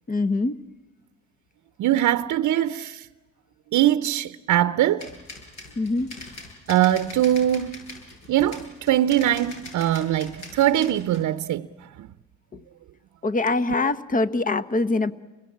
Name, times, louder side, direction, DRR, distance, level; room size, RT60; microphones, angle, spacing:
voice 1, 0.1-0.6 5.8-6.2 12.5-12.6 13.2-15.1, left 3 dB, 25° left, 1.1 m, -24 dB
voice 2, 1.8-3.1 3.7-5.1 6.7-7.9 8.3-12.1, right 12 dB, 70° right, 0.8 m, -22 dB
sound 1, 5.0-11.2, left 2 dB, 60° left, 7.7 m, -42 dB
29.5 x 22.0 x 8.5 m
cardioid pair, 90°, 30 cm